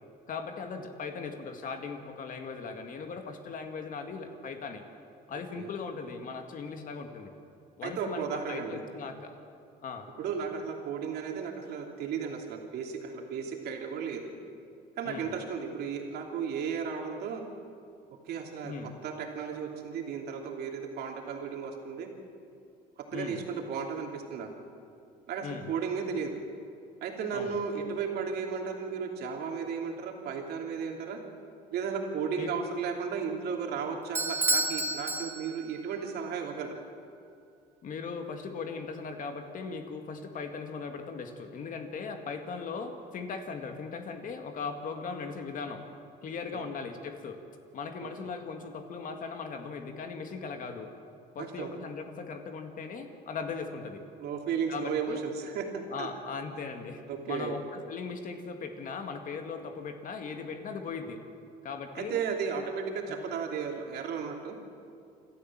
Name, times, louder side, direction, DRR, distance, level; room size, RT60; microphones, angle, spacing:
voice 1, 0.3-4.8 5.3-7.3 7.8-9.4 9.8-10.1 15.0-15.3 18.6-18.9 23.1-23.4 25.4-25.7 27.3-27.6 32.4-32.5 37.8-45.8 46.2-47.4 47.7-50.9 51.4-54.0 54.7-55.2 55.9-61.2 61.6-62.2, left 5 dB, 50° left, 5 dB, 2.0 m, -38 dB
voice 2, 7.8-8.8 10.2-14.2 15.0-17.4 18.3-22.1 23.1-24.5 25.3-26.3 27.0-31.2 31.7-36.8 46.5-46.6 48.0-48.1 51.4-51.7 54.2-56.1 57.1-57.6 61.9-64.6, right 6 dB, 75° right, 1 dB, 3.0 m, -34 dB
Bell / Doorbell, 34.1-35.9, right 2 dB, 15° right, 1.5 m, -30 dB
27.5 x 13.0 x 7.5 m, 2.4 s
cardioid pair, 110°, 17 cm